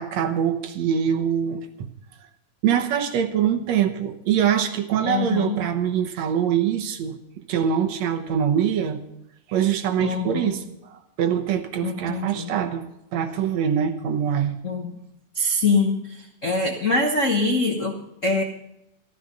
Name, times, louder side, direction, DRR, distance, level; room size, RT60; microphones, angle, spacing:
voice 1, 0.0-1.9 2.6-7.2 7.5-9.0 9.5-12.9 13.1-14.6, right 8 dB, 70° right, 6 dB, 2.1 m, -24 dB
voice 2, 5.0-5.6 10.0-10.5 11.8-12.5 14.6-14.9 15.3-18.4, left 3 dB, 70° left, 3 dB, 0.7 m, -24 dB
14.0 x 13.0 x 5.3 m, 0.81 s
omnidirectional pair, 3.4 m